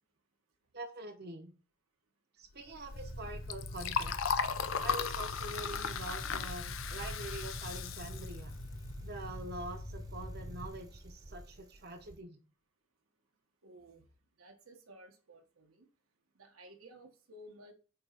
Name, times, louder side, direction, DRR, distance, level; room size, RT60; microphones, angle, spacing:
voice 1, 0.7-1.5 2.4-4.4 4.8-8.5 9.0-12.4, right 2 dB, 50° right, 4 dB, 0.9 m, -45 dB
Liquid, 2.7-9.4, left 6 dB, 70° left, 0.6 m, -37 dB
sound 1, 2.9-10.7, equal, 45° left, 1.2 m, -45 dB
Bicycle, 6.8-12.2, right 1 dB, 20° right, 0.6 m, -52 dB
voice 2, 13.6-14.0 14.4-15.9 16.3-17.7, right 1 dB, 85° right, 3 dB, 1.2 m, -55 dB
8.7 x 3.0 x 4.4 m, 0.37 s
head